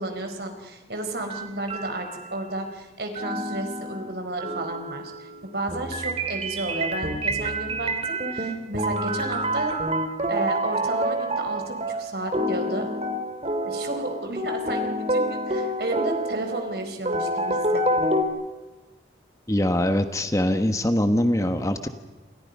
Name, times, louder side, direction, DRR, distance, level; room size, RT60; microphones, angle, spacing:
voice 1, 0.0-9.7 10.3-12.9 13.6-18.0, right 2 dB, 65° right, 5 dB, 4.6 m, -32 dB
sound 1, 1.3-2.5 3.1-18.2, right 1 dB, 35° right, 2.8 m, -28 dB
voice 2, 19.5-21.9, left 1 dB, 20° left, 8 dB, 1.3 m, -23 dB
28.5 x 28.5 x 5.5 m, 1.2 s
head